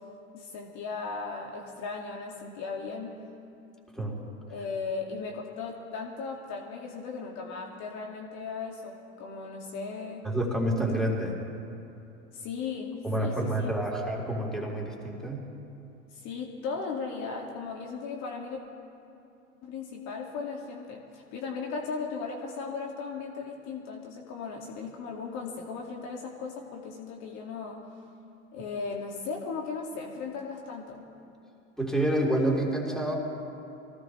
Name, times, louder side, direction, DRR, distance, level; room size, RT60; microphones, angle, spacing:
voice 1, 0.3-3.2 4.5-10.3 12.3-13.7 16.1-18.6 19.6-27.8 28.5-31.0, left 4 dB, 50° left, -1 dB, 2.3 m, -37 dB
voice 2, 10.2-11.4 13.0-15.4 31.8-33.2, right 1 dB, ahead, -3 dB, 3.9 m, -28 dB
24.5 x 18.0 x 3.3 m, 2.7 s
hypercardioid pair, 90°, 36 cm